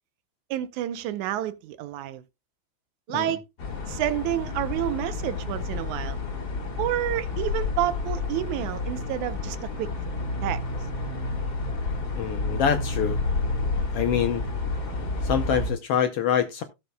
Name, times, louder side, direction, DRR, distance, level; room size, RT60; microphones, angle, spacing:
voice 1, 0.5-2.2 3.1-3.4 3.9-6.2 6.8-9.9 10.4-10.6, right 13 dB, 85° right, 2.1 m, -29 dB
sound 1, 3.6-15.7, left 3 dB, 35° left, 2.2 m, -30 dB
voice 2, 12.2-13.2 13.9-14.4 15.2-16.6, left 8 dB, 75° left, 1.4 m, -25 dB
16.5 x 6.8 x 2.2 m
omnidirectional pair, 3.4 m